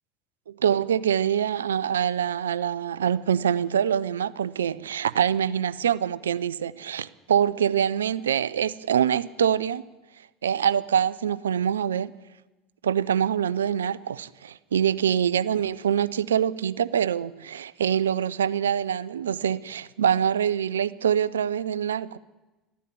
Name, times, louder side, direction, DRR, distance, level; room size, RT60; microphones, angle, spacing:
voice 1, 0.5-9.8 10.4-12.1 12.8-22.2, right 9 dB, 85° right, 19 dB, 0.4 m, -25 dB
13.0 x 9.9 x 8.5 m, 1.1 s
hypercardioid pair, 75°, 0 cm